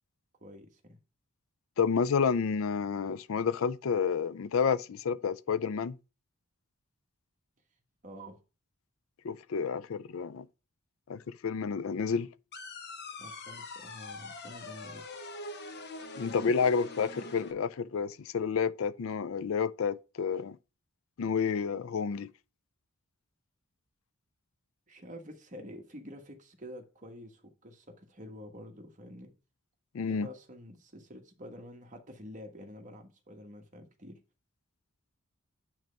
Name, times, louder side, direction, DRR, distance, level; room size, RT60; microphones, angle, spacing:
voice 1, 0.4-1.0 8.0-8.4 13.2-15.0 24.9-29.3 30.1-34.2, equal, 35° right, 1.4 m, -48 dB
voice 2, 1.8-6.0 9.2-10.5 11.1-12.3 16.2-20.6 21.2-22.3 29.9-30.3, left 6 dB, 65° left, 0.4 m, -30 dB
sound 1, 12.5-17.5, left 2 dB, 50° left, 1.0 m, -43 dB
9.1 x 3.3 x 5.2 m
head